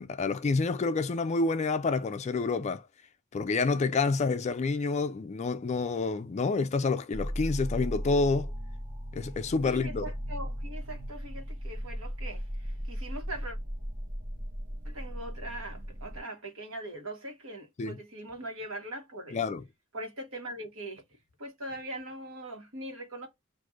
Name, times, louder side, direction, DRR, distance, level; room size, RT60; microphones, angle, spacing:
voice 1, 0.0-2.8 3.3-8.5 9.1-10.1 17.8-18.0 19.3-19.6, left 3 dB, 35° left, 0.3 m, -28 dB
sound 1, 7.1-16.2, equal, 40° right, 1.2 m, -37 dB
voice 2, 9.6-13.6 14.8-19.5 19.9-21.0 21.4-23.3, right 1 dB, 75° right, 1.3 m, -41 dB
6.1 x 2.5 x 2.4 m
head